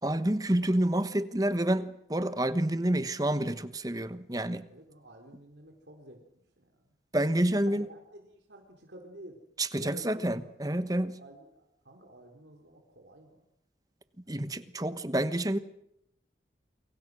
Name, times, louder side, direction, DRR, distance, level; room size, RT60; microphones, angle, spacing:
voice 1, 0.0-4.7 7.1-7.8 9.6-11.2 14.3-15.6, right 1 dB, 20° right, 12 dB, 1.2 m, -28 dB
voice 2, 4.7-6.2 6.6-6.9 7.3-9.4 9.8-13.4 14.3-14.4, right 1 dB, 80° right, 2 dB, 3.8 m, -51 dB
28.5 x 23.5 x 6.3 m, 0.77 s
head